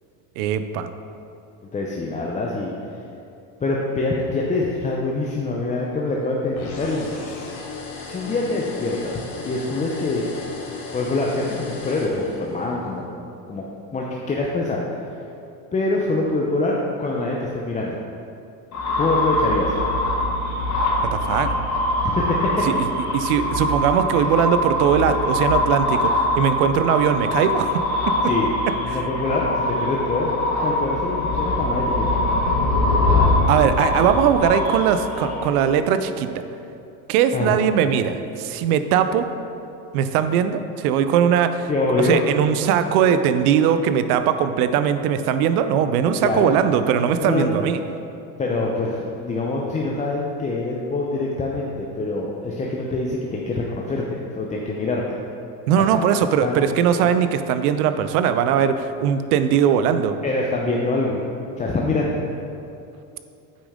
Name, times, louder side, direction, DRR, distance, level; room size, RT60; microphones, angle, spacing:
voice 1, 0.4-0.9 21.1-21.5 22.6-28.1 28.9-29.0 33.5-36.3 37.1-39.3 39.9-47.8 55.7-60.2, right 8 dB, 80° right, 10 dB, 0.6 m, -20 dB
voice 2, 1.7-2.7 3.6-7.5 8.1-10.3 10.9-13.1 13.5-13.7 13.9-14.8 15.7-18.0 19.0-19.7 22.0-22.7 24.1-24.3 28.2-28.5 28.8-30.3 30.6-32.2 37.3-37.6 41.7-42.2 46.2-46.5 47.2-47.5 48.4-54.0 54.3-55.0 55.8-55.9 56.4-56.6 60.2-61.2 61.6-62.2, left 2 dB, 15° left, -2 dB, 0.6 m, -25 dB
sound 1, 6.6-12.7, left 4 dB, 75° left, 1.6 m, -35 dB
sound 2, 18.7-35.8, left 1 dB, 40° left, 1.6 m, -23 dB
8.7 x 5.2 x 3.6 m, 2.7 s
supercardioid pair, 110°, 43 cm